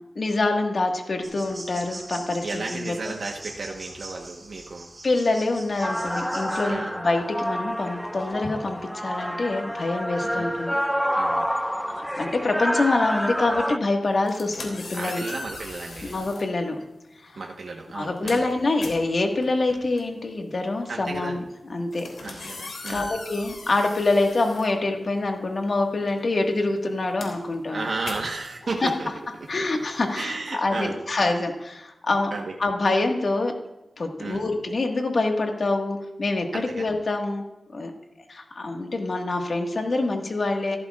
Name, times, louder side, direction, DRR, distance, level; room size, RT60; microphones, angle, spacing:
voice 1, 0.1-3.1 5.0-10.8 11.9-15.2 16.0-16.8 17.2-17.4 17.9-22.4 22.9-27.9 28.8-28.9 29.5-32.3 32.6-33.6 34.0-37.4 37.7-37.9 38.3-40.8, left 2 dB, 60° left, 3 dB, 1.7 m, -26 dB
sound 1, 1.2-6.7, right 2 dB, 35° right, 3.9 m, -42 dB
voice 2, 2.4-4.9 6.6-6.9 10.3-10.5 11.1-11.4 14.9-16.2 17.3-18.5 20.9-21.4 22.2-23.1 27.7-29.1 30.1-31.0 32.3-32.5 34.2-34.4 36.5-36.9, right 3 dB, 70° right, 0 dB, 1.2 m, -33 dB
sound 2, 5.8-13.8, equal, ahead, 0.4 m, -28 dB
sound 3, 14.1-16.5 17.4-17.6 17.9-25.4 25.7-30.3, left 3 dB, 90° left, 2.8 m, -40 dB
16.0 x 13.5 x 2.5 m, 0.99 s
wide cardioid pair, 65°, 0 cm